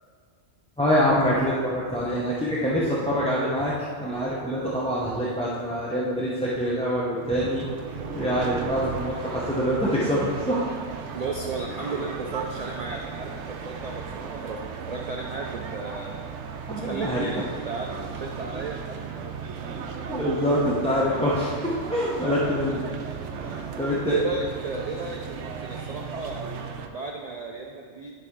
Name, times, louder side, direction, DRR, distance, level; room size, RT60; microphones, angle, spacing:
voice 1, 0.8-3.7 4.0-7.7 8.1-10.7 11.8-12.0 16.7-17.3 20.1-22.8 23.4-24.2, equal, 5° left, -7 dB, 0.7 m, -25 dB
sound 1, 7.2-26.9, right 6 dB, 80° right, 0.9 m, -36 dB
voice 2, 11.1-14.6 14.9-16.3 16.7-19.3 23.4-26.5 26.9-28.1, right 3 dB, 50° right, 1 dB, 0.5 m, -35 dB
11.0 x 4.2 x 3.6 m, 2.1 s
omnidirectional pair, 1.2 m